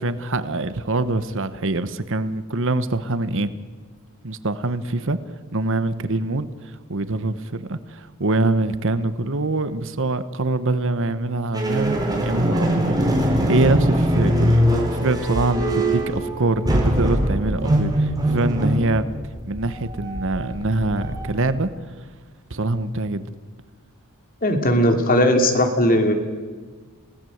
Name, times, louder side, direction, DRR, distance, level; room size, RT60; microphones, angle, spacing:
voice 1, 0.0-3.5 4.2-5.2 5.5-14.6 15.0-19.1 19.5-21.7 22.5-23.2, right 2 dB, 65° right, 12 dB, 1.1 m, -24 dB
sound 1, 11.5-21.6, equal, 20° right, 4.6 m, -22 dB
voice 2, 24.4-26.1, left 1 dB, 45° left, 5 dB, 2.8 m, -18 dB
28.5 x 17.0 x 8.0 m, 1.5 s
head